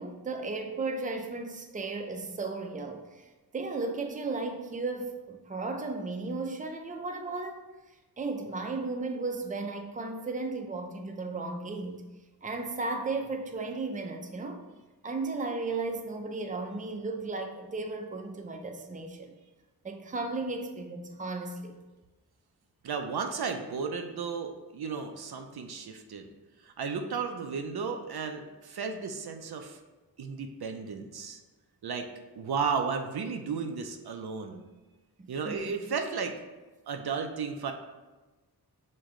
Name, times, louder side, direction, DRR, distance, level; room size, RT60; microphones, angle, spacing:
voice 1, 0.0-3.3 3.5-7.6 8.2-12.1 12.4-14.6 15.0-19.3 19.8-21.8 35.2-35.7, right 3 dB, 20° right, 4 dB, 0.5 m, -35 dB
voice 2, 22.8-26.3 26.6-29.8 30.2-31.4 31.8-32.1 32.4-34.6 35.3-36.4 36.9-37.7, right 5 dB, 70° right, 5 dB, 0.5 m, -34 dB
6.3 x 2.2 x 3.6 m, 1.2 s
wide cardioid pair, 55°, 39 cm